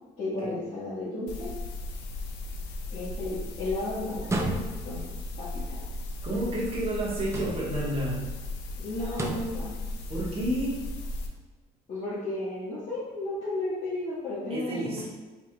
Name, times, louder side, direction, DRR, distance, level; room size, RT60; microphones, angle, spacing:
voice 1, 0.2-1.5 2.9-5.1 5.4-5.8 8.8-9.7 11.9-15.1, left 2 dB, 45° left, -12 dB, 1.5 m, -33 dB
sound 1, 1.3-11.3, left 2 dB, 90° left, 0.5 m, -36 dB
sound 2, 4.2-5.0 7.2-7.9 9.1-9.6, right 2 dB, 15° right, 0.4 m, -32 dB
voice 2, 6.2-8.2 10.1-10.8 14.5-15.1, right 1 dB, 35° right, -5 dB, 1.3 m, -30 dB
4.7 x 3.1 x 2.3 m, 1.3 s
cardioid pair, 110°, 17 cm